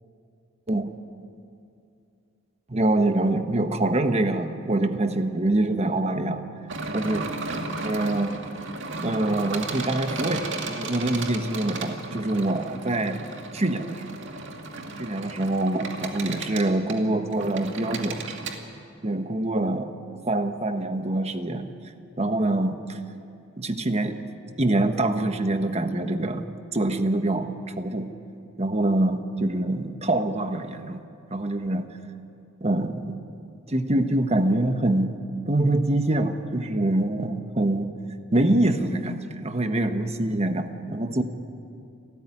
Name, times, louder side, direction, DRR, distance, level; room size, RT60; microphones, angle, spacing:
voice 1, 2.7-6.4 6.9-7.2 7.8-8.4 9.0-13.2 13.5-14.0 15.0-18.2 19.0-19.9 20.2-21.7 22.2-23.0 23.6-24.2 24.6-26.5 26.7-28.1 28.6-31.0 31.3-31.9 32.6-33.2 33.7-35.2 35.5-37.9 38.3-41.2, right 1 dB, 30° right, 7 dB, 1.3 m, -25 dB
sound 1, 6.7-18.5, right 3 dB, 60° right, 2.2 m, -34 dB
29.0 x 13.5 x 9.9 m, 2.6 s
head